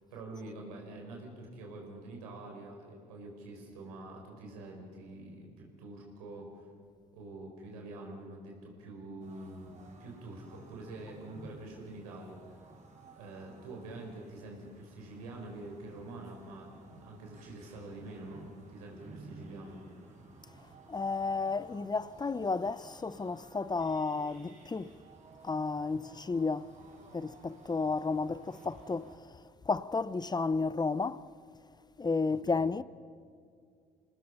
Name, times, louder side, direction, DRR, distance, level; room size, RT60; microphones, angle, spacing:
voice 1, 0.1-6.7 7.1-12.7 13.2-19.8 32.3-32.7, right 2 dB, 85° right, 4.6 m, -46 dB
sound 1, 9.2-29.2, right 3 dB, 40° right, 5.3 m, -55 dB
voice 2, 20.9-24.9 25.4-26.7 27.1-29.3 29.7-31.2 32.0-32.8, left 4 dB, 20° left, 0.7 m, -32 dB
27.0 x 19.0 x 5.7 m
hypercardioid pair, 55°, 19 cm